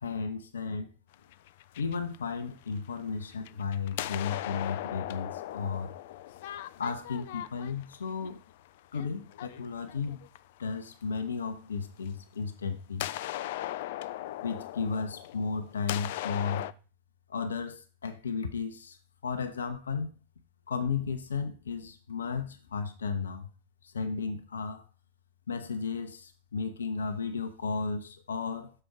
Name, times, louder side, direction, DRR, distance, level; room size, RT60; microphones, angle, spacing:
voice 1, 0.0-0.9 1.8-5.9 6.8-8.4 8.9-10.2 10.6-13.1 14.4-16.7 17.3-19.0 19.2-20.1 20.7-23.5 23.8-24.9 25.5-28.7, left 5 dB, 70° left, 0.8 m, -34 dB
sound 1, 1.1-2.9 3.3-10.6 12.0-12.1 13.0-16.7, left 14 dB, 55° left, 0.3 m, -38 dB
6.7 x 4.4 x 5.9 m
figure-of-eight pair, 90°, 0 cm